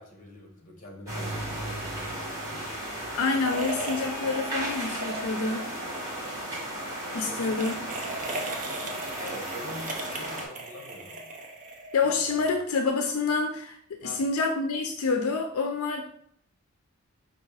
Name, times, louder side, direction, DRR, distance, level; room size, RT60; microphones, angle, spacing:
voice 1, 0.0-2.5 7.3-7.6 9.2-11.2 12.0-12.5 14.0-14.2, left 1 dB, 35° left, 1 dB, 1.0 m, -44 dB
sound 1, 1.1-10.5, right 1 dB, 15° right, 1.2 m, -35 dB
Bowed string instrument, 1.7-4.9, left 2 dB, 60° right, 1.2 m, -46 dB
voice 2, 3.1-5.7 7.1-7.8 11.9-16.0, left 4 dB, 75° left, 4 dB, 0.4 m, -27 dB
sound 2, 3.4-5.7 5.9-6.1 7.2-12.2, right 2 dB, 35° right, 0.5 m, -38 dB
4.4 x 2.6 x 4.7 m, 0.65 s
head